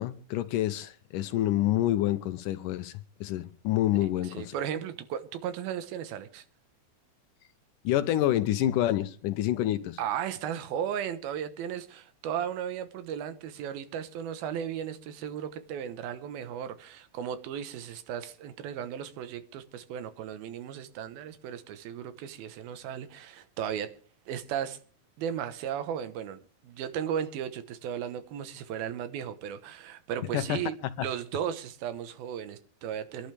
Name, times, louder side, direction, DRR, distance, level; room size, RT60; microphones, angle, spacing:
voice 1, 0.0-2.9 3.2-4.5 7.8-10.0 30.3-30.6 31.0-31.1, left 13 dB, 75° left, 2.2 m, -27 dB
voice 2, 4.2-6.4 10.0-23.9 24.3-24.8 25.2-33.3, right 9 dB, 90° right, 3.0 m, -35 dB
25.5 x 11.5 x 3.4 m
omnidirectional pair, 4.1 m